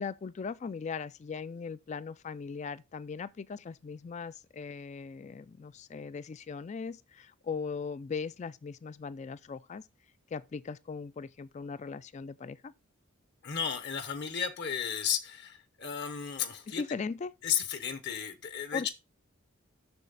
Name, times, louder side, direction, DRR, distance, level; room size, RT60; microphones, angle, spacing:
voice 1, 0.0-9.9 10.3-12.7 16.7-17.3 18.7-18.9, left 5 dB, 35° left, 0.3 m, -39 dB
voice 2, 13.4-16.8 17.4-18.9, left 8 dB, 55° left, 0.8 m, -33 dB
7.0 x 6.6 x 3.9 m
head